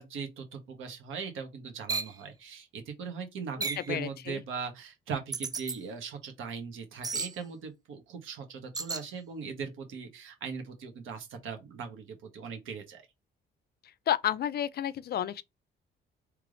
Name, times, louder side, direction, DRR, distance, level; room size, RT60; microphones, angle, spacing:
voice 1, 0.0-13.0, right 6 dB, 85° right, 1.5 m, -40 dB
sound 1, 1.9-2.1 3.6-3.9 5.3-5.8 7.0-7.3 8.7-9.1, right 4 dB, 20° right, 0.5 m, -33 dB
voice 2, 3.6-4.4 14.1-15.4, left 11 dB, 55° left, 0.4 m, -31 dB
3.4 x 3.3 x 3.8 m
cardioid pair, 90°, 20 cm